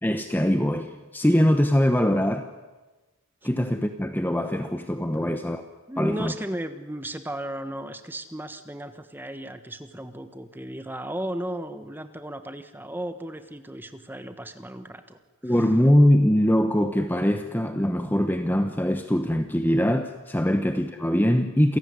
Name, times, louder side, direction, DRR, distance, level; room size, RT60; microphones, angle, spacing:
voice 1, 0.0-2.5 3.4-5.6 6.0-6.3 15.4-21.8, equal, 10° left, 7 dB, 1.0 m, -22 dB
voice 2, 5.9-15.7, right 1 dB, 10° right, 9 dB, 1.3 m, -35 dB
28.0 x 17.0 x 9.6 m, 1.2 s
head